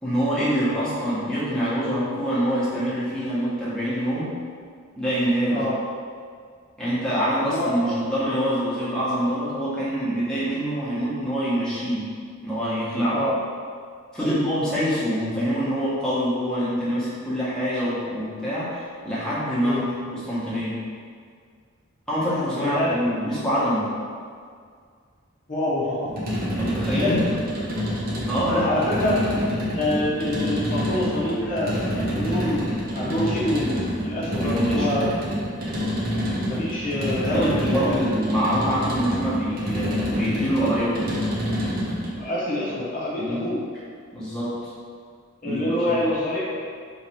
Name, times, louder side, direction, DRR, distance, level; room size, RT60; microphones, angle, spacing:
voice 1, 0.0-4.3 5.0-5.6 6.8-12.1 12.4-13.2 14.1-19.8 20.1-20.8 22.1-23.9 26.6-27.4 28.3-29.0 34.4-35.0 35.8-36.0 37.3-41.2 43.2-43.5 44.1-44.7 45.4-46.0, equal, 5° left, -11 dB, 1.1 m, -25 dB
voice 2, 7.4-8.1 13.1-13.3 14.2-14.4 19.6-19.8 22.6-22.9 25.5-26.1 26.9-27.2 28.6-29.2 29.7-35.1 36.5-38.1 42.2-43.6 45.4-46.4, left 1 dB, 40° left, -8 dB, 0.8 m, -26 dB
sound 1, 26.1-42.2, equal, 45° right, 0.7 m, -27 dB
3.1 x 2.9 x 4.4 m, 2.1 s
head